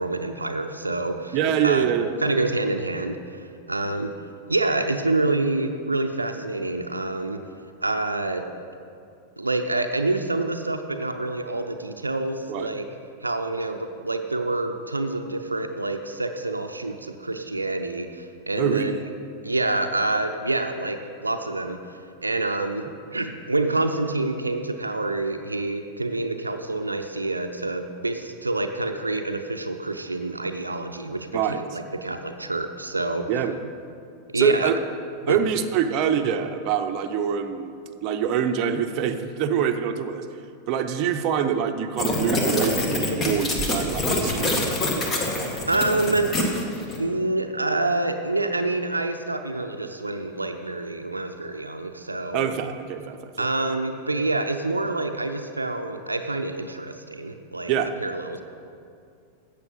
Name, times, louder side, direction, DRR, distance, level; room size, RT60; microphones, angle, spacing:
voice 1, 0.0-1.9 2.2-4.1 4.5-7.4 7.8-8.4 9.4-12.9 13.2-19.1 19.4-33.4 34.3-34.7 35.2-35.4 45.7-46.3 47.0-52.5 53.4-57.7 58.0-58.4, right 2 dB, 80° right, 6 dB, 0.6 m, -27 dB
voice 2, 1.3-2.1 12.5-12.7 18.6-19.0 31.3-31.6 33.3-33.7 34.3-34.8 35.3-37.7 38.0-40.3 40.7-44.5 52.3-53.5 57.7-57.9, right 8 dB, 40° right, 6 dB, 0.7 m, -25 dB
sound 1, 42.0-47.0, left 1 dB, 25° left, 1.7 m, -25 dB
14.0 x 8.4 x 5.3 m, 2.4 s
figure-of-eight pair, 90°, 0 cm